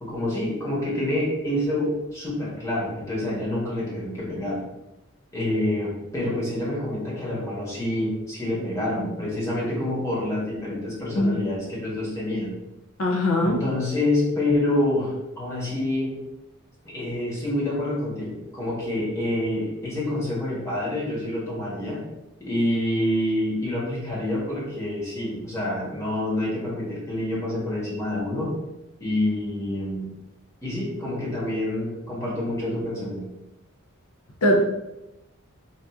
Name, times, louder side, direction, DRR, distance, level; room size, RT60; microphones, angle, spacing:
voice 1, 0.0-4.6 5.3-12.6 13.4-16.2 16.8-22.1 22.4-28.6 29.0-30.1 30.6-33.3, left 1 dB, 15° left, -6 dB, 1.0 m, -27 dB
voice 2, 13.0-13.6 34.4-34.6, equal, 70° left, 1 dB, 0.6 m, -20 dB
4.0 x 2.4 x 2.3 m, 0.94 s
head